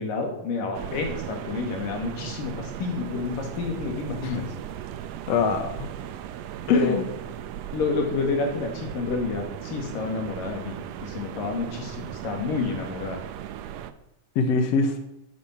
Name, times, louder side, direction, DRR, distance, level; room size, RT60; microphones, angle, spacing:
voice 1, 0.0-4.5 6.7-7.0 7.7-13.2, left 4 dB, 75° left, 3 dB, 3.9 m, -29 dB
sound 1, 0.7-13.9, right 10 dB, 85° right, 1.5 m, -37 dB
voice 2, 5.3-5.9 6.7-7.0 14.4-15.0, left 4 dB, 60° left, 6 dB, 2.0 m, -23 dB
11.0 x 9.3 x 7.2 m, 0.83 s
omnidirectional pair, 3.9 m